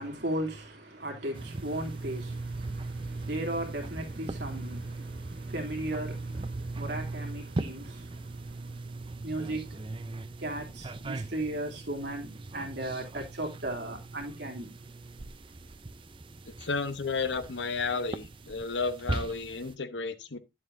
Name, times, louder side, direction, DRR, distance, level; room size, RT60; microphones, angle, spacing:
voice 1, 0.0-14.8, right 1 dB, 70° right, 2.9 m, -37 dB
sound 1, 1.3-19.7, right 2 dB, 30° right, 0.5 m, -39 dB
voice 2, 16.6-20.4, left 4 dB, 80° left, 1.0 m, -32 dB
10.5 x 7.6 x 2.6 m
head